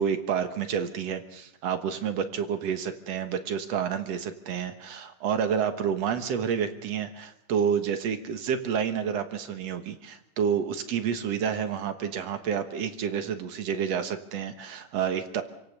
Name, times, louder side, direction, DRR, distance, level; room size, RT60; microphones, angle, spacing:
voice 1, 0.0-15.4, right 7 dB, 65° right, 8 dB, 2.4 m, -29 dB
27.0 x 17.0 x 6.7 m, 0.80 s
omnidirectional pair, 3.4 m